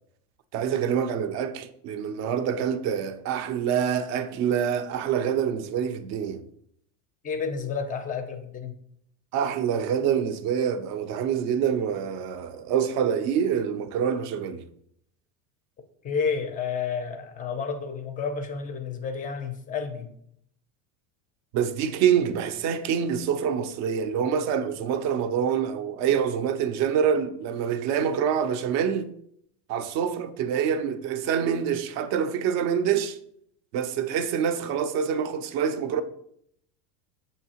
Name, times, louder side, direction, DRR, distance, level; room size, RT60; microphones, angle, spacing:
voice 1, 0.5-6.4 9.3-14.6 21.5-29.1 29.7-33.2 33.7-36.0, right 8 dB, 40° right, 0.4 m, -26 dB
voice 2, 7.2-8.7 16.0-20.1, left 6 dB, 20° left, 0.4 m, -30 dB
6.9 x 2.7 x 2.8 m
supercardioid pair, 115°, 45 cm